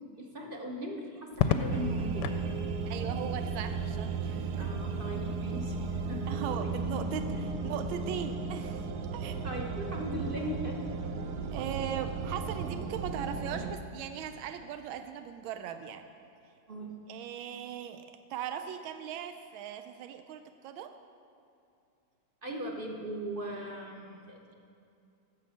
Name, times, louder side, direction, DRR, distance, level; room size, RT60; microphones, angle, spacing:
voice 1, 0.2-2.3 4.6-6.8 7.3-7.4 9.4-11.0 11.4-11.5 16.7-17.0 22.4-24.5, equal, 45° right, 1 dB, 0.7 m, -39 dB
Crackle, 1.3-2.5 4.1-4.6, left 8 dB, 70° left, 1.0 m, -31 dB
sound 1, 1.7-13.7, right 4 dB, 70° right, 1.0 m, -35 dB
voice 2, 2.9-4.7 6.3-9.4 11.5-16.1 17.1-18.0 18.3-20.9, right 9 dB, 90° right, 8 dB, 1.4 m, -39 dB
10.5 x 6.7 x 7.1 m, 2.5 s
omnidirectional pair, 2.1 m